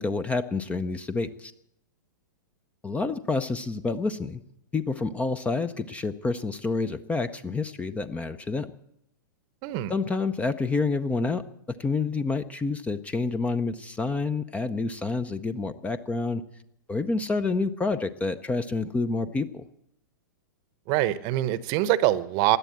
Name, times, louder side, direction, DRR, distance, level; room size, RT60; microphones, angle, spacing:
voice 1, 0.0-1.5 2.8-4.4 4.7-8.7 9.9-11.4 11.8-16.4 16.9-19.7, left 3 dB, 10° left, 13 dB, 0.6 m, -28 dB
voice 2, 9.6-9.9 20.9-22.6, right 15 dB, 40° right, 16 dB, 0.9 m, -24 dB
17.0 x 11.0 x 7.5 m, 0.78 s
figure-of-eight pair, 105°, 11 cm